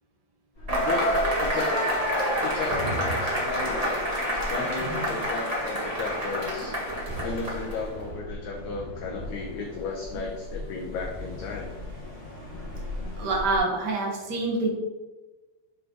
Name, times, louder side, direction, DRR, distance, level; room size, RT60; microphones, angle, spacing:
sound 1, 0.6-13.6, left 1 dB, 20° left, 1.7 m, -39 dB
voice 1, 0.7-1.9 2.4-6.7 7.2-11.8, left 4 dB, 70° left, 0 dB, 1.9 m, -34 dB
Cheering / Applause / Crowd, 0.7-7.9, equal, 25° right, 0.7 m, -28 dB
voice 2, 13.2-14.7, right 3 dB, 70° right, -1 dB, 0.9 m, -26 dB
11.5 x 3.8 x 3.8 m, 1.2 s
omnidirectional pair, 4.0 m